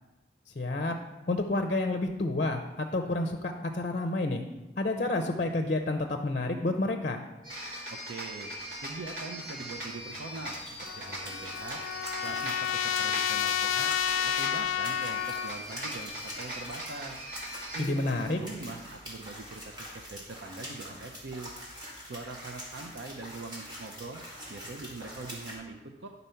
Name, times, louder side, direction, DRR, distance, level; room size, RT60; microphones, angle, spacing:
voice 1, 0.6-0.9 1.3-4.4 4.8-7.2 17.8-18.4, left 2 dB, 40° left, 5 dB, 0.5 m, -29 dB
sound 1, 7.4-17.9, equal, 45° right, 1.9 m, -40 dB
voice 2, 7.9-8.5 8.8-11.8 12.2-13.9 14.2-17.2 17.7-21.5 22.1-24.2 24.5-26.1, right 3 dB, 70° right, 4 dB, 0.6 m, -42 dB
sound 2, 9.3-25.5, equal, 25° right, 2.1 m, -45 dB
Trumpet, 10.9-15.6, left 10 dB, 90° left, 0.3 m, -30 dB
10.5 x 4.1 x 5.6 m, 1.1 s
head